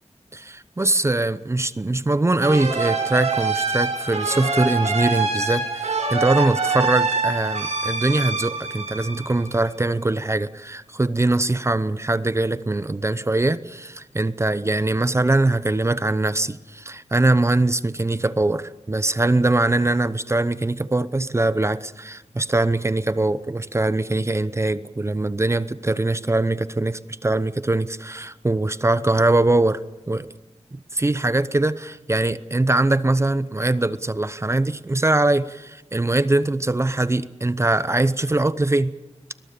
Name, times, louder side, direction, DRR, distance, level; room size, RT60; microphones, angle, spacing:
voice 1, 0.3-29.8 30.1-30.3 30.7-31.7 32.1-38.9, right 2 dB, 25° right, 15 dB, 0.8 m, -22 dB
sound 1, 2.4-9.8, right 4 dB, 90° right, 7.7 m, -25 dB
22.5 x 21.0 x 6.9 m, 1.0 s
wide cardioid pair, 105°, 11 cm